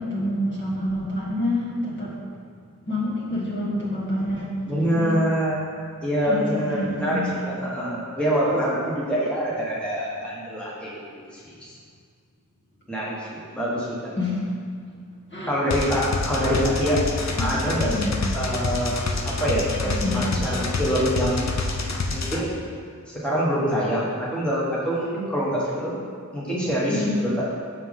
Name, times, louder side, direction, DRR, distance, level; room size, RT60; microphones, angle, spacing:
voice 1, 0.0-2.2 2.8-5.2 6.2-7.4 14.2-14.5 15.3-15.6 17.4-18.1 19.8-20.2 26.9-27.2, left 1 dB, 35° left, -6 dB, 1.6 m, -28 dB
voice 2, 4.7-5.6 6.0-7.2 7.6-10.9 11.3-11.7 12.9-13.9 15.5-17.0 17.4-18.0 18.3-19.0 19.4-21.5 22.1-22.5 23.1-26.0 26.3-27.4, equal, 5° left, -7 dB, 1.2 m, -25 dB
sound 1, 15.7-22.4, left 3 dB, 55° left, 0.6 m, -27 dB
6.2 x 5.6 x 3.7 m, 2.1 s
wide cardioid pair, 55°, 32 cm